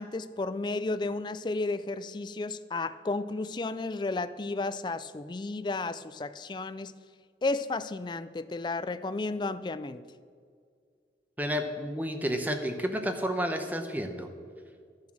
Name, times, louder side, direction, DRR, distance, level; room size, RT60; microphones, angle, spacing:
voice 1, 0.0-6.9 7.4-10.0, left 3 dB, 25° left, 0.3 m, -33 dB
voice 2, 11.4-14.3, equal, 10° right, 0.8 m, -31 dB
12.5 x 7.3 x 6.2 m
head